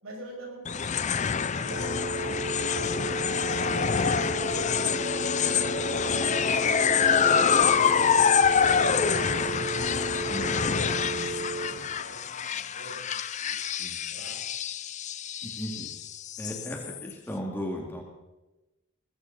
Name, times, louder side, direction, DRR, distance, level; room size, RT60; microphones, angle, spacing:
voice 1, 0.0-1.9 2.2-3.7 4.0-4.6 5.4-6.7 7.2-8.8 9.1-9.6 10.2-13.6 14.1-14.4, right 1 dB, 75° right, -2 dB, 6.6 m, -45 dB
sound 1, 0.7-17.1, left 7 dB, 35° left, 0.5 m, -26 dB
sound 2, 1.7-11.7, right 3 dB, 45° right, 2.7 m, -34 dB
voice 2, 10.1-10.5 11.0-11.3 13.8-14.0 15.4-15.9 16.4-18.0, equal, 10° left, 1 dB, 2.2 m, -37 dB
20.5 x 14.5 x 4.2 m, 1.0 s
head